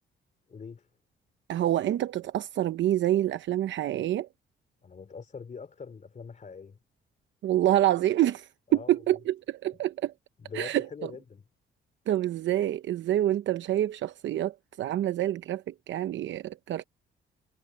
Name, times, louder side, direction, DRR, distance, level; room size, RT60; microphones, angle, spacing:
voice 1, 0.5-0.9 4.8-6.8 8.7-9.0 10.4-11.4, left 5 dB, 40° left, 3.4 m, -43 dB
voice 2, 1.5-4.3 7.4-10.1 10.5-11.1 12.1-16.8, right 13 dB, 70° right, 0.8 m, -27 dB
cardioid pair, 90°, 20 cm